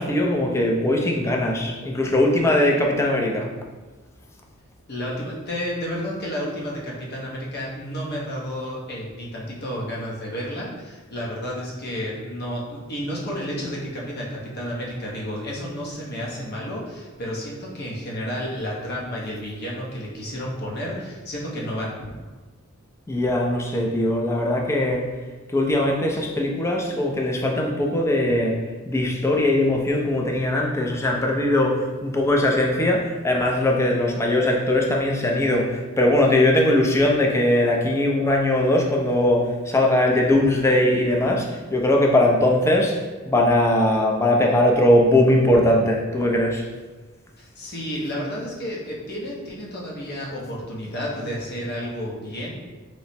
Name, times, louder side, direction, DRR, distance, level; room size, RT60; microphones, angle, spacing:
voice 1, 0.0-3.5 23.1-25.1 25.5-28.6 28.9-43.0 43.3-46.6, left 1 dB, 15° left, 0 dB, 0.4 m, -20 dB
voice 2, 4.9-22.2 47.4-52.5, equal, 50° left, -4 dB, 0.7 m, -31 dB
3.1 x 2.0 x 4.1 m, 1.2 s
head